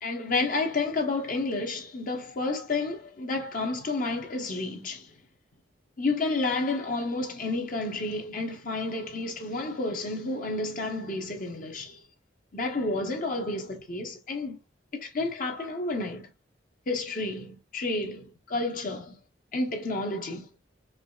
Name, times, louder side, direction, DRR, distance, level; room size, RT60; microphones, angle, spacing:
voice 1, 0.0-5.1 6.0-12.0 12.5-14.6 15.0-16.3 16.9-19.2 19.5-20.5, left 2 dB, 45° left, 0.9 m, -30 dB
4.8 x 3.1 x 2.3 m
head